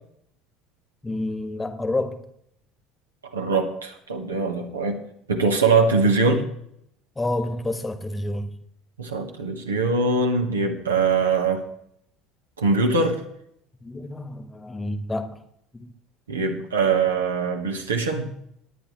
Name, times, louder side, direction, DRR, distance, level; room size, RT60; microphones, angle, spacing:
voice 1, 1.0-2.3 7.1-8.5 13.8-15.5 15.7-15.9, left 2 dB, 15° left, 1.3 m, -29 dB
voice 2, 3.3-5.0 5.3-6.4 9.0-11.6 12.6-13.2 16.3-18.3, right 4 dB, 80° right, 1.5 m, -22 dB
19.0 x 9.5 x 3.2 m
figure-of-eight pair, 65°, 0 cm